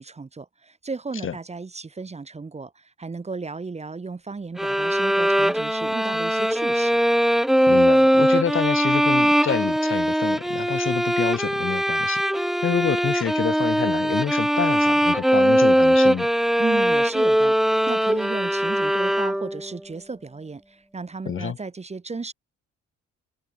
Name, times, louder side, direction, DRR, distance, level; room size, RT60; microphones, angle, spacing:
voice 1, 0.0-7.0 16.6-22.3, right 4 dB, 20° right, 1.0 m, -34 dB
sound 1, 4.6-19.7, equal, ahead, 0.3 m, -21 dB
voice 2, 7.7-12.2 12.6-16.3 21.3-21.6, left 8 dB, 45° left, 1.1 m, -28 dB
cardioid pair, 90°, 30 cm